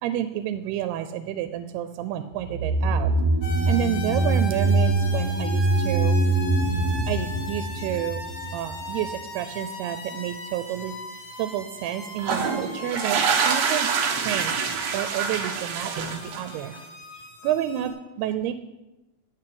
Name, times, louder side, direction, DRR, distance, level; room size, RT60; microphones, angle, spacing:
voice 1, 0.0-3.1 3.7-6.2 7.1-8.2 8.5-11.0 11.4-14.7 14.9-16.7 17.2-18.5, right 11 dB, 85° right, 10 dB, 2.6 m, -30 dB
sound 1, 2.4-8.8 9.1-9.2, right 2 dB, 10° right, 3.9 m, -23 dB
sound 2, 3.4-17.9, equal, 50° left, 3.1 m, -38 dB
sound 3, 12.2-16.7, right 6 dB, 70° right, 1.6 m, -26 dB
12.5 x 6.3 x 7.8 m, 1.0 s
omnidirectional pair, 4.5 m